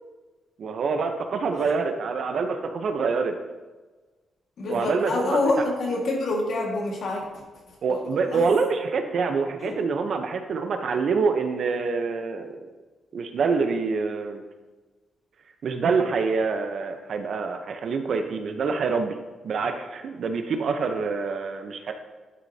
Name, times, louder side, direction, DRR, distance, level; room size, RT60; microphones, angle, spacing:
voice 1, 0.6-3.4 4.7-5.4 7.8-12.6 13.1-14.4 15.6-19.2 19.4-21.9, right 4 dB, 60° right, 6 dB, 0.8 m, -26 dB
voice 2, 4.6-7.4 7.9-8.4 9.6-9.9, left 2 dB, 65° left, 0 dB, 1.8 m, -27 dB
11.0 x 6.3 x 2.8 m, 1.2 s
cardioid pair, 125°, 0 cm